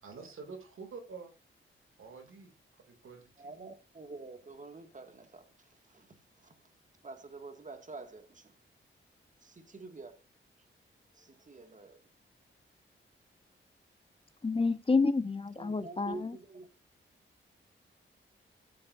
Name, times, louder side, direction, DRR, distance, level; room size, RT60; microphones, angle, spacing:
voice 1, 0.0-1.3 2.0-2.5 2.9-3.5, right 5 dB, 80° right, 2.6 m, -47 dB
voice 2, 3.4-6.7 7.0-8.6 9.4-10.2 11.1-12.1 15.6-16.7, right 3 dB, 40° right, 2.0 m, -48 dB
voice 3, 14.4-16.3, left 4 dB, 25° left, 0.8 m, -29 dB
14.5 x 7.6 x 2.6 m
cardioid pair, 70°, 21 cm